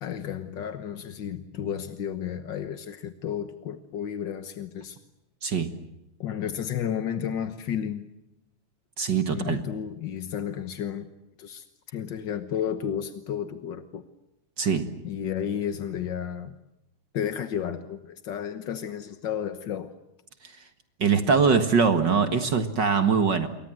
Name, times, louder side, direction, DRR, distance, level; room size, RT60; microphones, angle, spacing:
voice 1, 0.0-5.0 6.2-8.1 9.3-11.1 11.4-14.0 15.0-16.6 17.1-19.9, left 9 dB, 55° left, 10 dB, 1.3 m, -32 dB
voice 2, 9.0-9.6 14.6-14.9 21.0-23.5, right 5 dB, 45° right, 9 dB, 1.8 m, -22 dB
28.5 x 23.5 x 7.7 m, 0.88 s
omnidirectional pair, 3.5 m